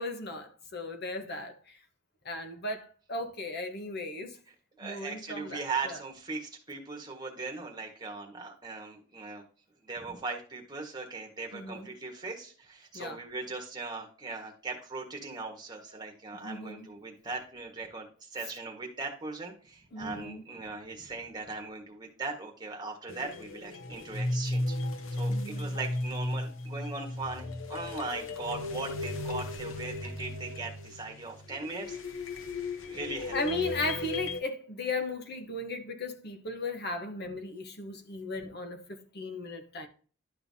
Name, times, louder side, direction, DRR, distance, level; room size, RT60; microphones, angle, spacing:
voice 1, 0.0-1.8 2.2-4.4 4.8-6.0 11.5-11.9 12.9-13.2 15.9-16.1 16.4-16.9 19.9-20.4 25.3-25.7 30.4-30.6 33.3-39.9, left 2 dB, 50° left, 1.1 m, -36 dB
voice 2, 4.8-9.4 9.8-24.7 25.1-32.0 32.9-33.4 38.4-38.5, right 3 dB, 20° right, 1.5 m, -39 dB
sound 1, 23.1-34.4, left 2 dB, 70° left, 0.9 m, -35 dB
11.5 x 5.6 x 2.8 m
head